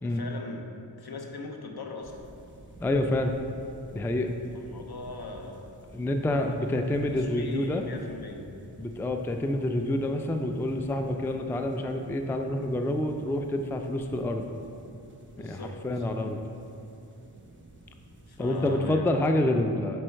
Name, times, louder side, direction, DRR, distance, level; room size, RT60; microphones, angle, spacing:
voice 1, 0.0-0.7 1.0-2.2 4.5-5.7 6.4-6.7 7.1-8.5 15.4-16.0 18.3-19.1, left 3 dB, 60° left, 2 dB, 0.8 m, -40 dB
sound 1, 2.0-18.8, right 1 dB, 25° right, 1.0 m, -51 dB
voice 2, 2.8-3.3 3.9-4.3 5.9-7.8 8.8-14.6 15.4-16.4 18.4-20.0, left 1 dB, 5° left, 5 dB, 0.3 m, -28 dB
6.2 x 4.5 x 4.4 m, 2.6 s
wide cardioid pair, 40°, 42 cm